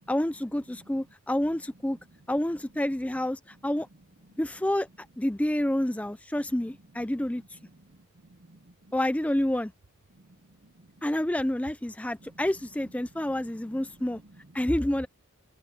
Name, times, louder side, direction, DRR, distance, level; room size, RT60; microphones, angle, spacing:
voice 1, 0.1-2.0 2.3-3.9 4.4-4.9 5.2-7.6 8.9-9.7 11.0-14.2 14.5-15.1, left 1 dB, 5° left, 0.4 m, -28 dB
voice 2, 0.7-1.1 1.8-1.9 4.2-4.4 7.3-9.0 10.1-11.0 12.2-12.4 12.8-14.8, right 1 dB, 50° right, 0.9 m, -56 dB
head